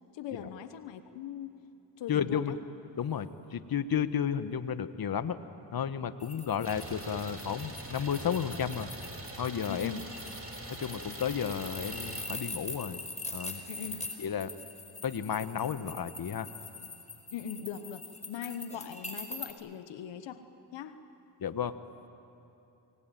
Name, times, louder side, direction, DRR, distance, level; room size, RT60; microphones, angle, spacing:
voice 1, 0.1-1.5 2.0-2.6 9.7-10.1 13.7-14.1 17.3-20.4 20.7-21.0, left 8 dB, 85° left, 10 dB, 1.2 m, -40 dB
voice 2, 2.1-2.5 3.0-5.4 5.7-8.9 9.4-9.9 10.8-13.0 13.3-13.6 14.2-14.5 15.0-16.5 21.4-21.7, left 8 dB, 55° left, 12 dB, 1.3 m, -32 dB
sound 1, 6.2-19.5, left 2 dB, 15° left, 4.8 m, -43 dB
Idling, 6.6-12.2, right 2 dB, 30° right, 6.7 m, -43 dB
28.0 x 20.5 x 9.2 m, 3.0 s
supercardioid pair, 50°, 43 cm